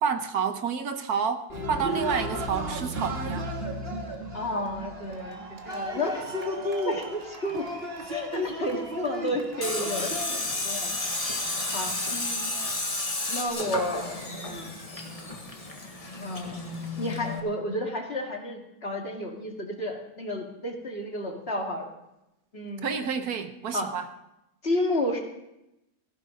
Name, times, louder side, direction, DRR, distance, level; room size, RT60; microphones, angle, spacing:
voice 1, 0.0-3.5 22.8-24.1, right 6 dB, 75° right, 8 dB, 1.5 m, -29 dB
Cheering, 1.5-13.5, right 1 dB, 40° right, 1.9 m, -35 dB
voice 2, 4.3-6.2 6.8-7.7 8.1-10.9 11.7-12.5 13.3-14.2 14.4-14.8 16.2-16.6 17.0-21.9 22.5-22.9 23.7-23.9 24.6-25.2, left 1 dB, 40° left, 1 dB, 2.3 m, -31 dB
Tools, 9.6-17.4, left 2 dB, 25° left, 1.6 m, -32 dB
17.5 x 15.5 x 3.9 m, 0.88 s
omnidirectional pair, 1.6 m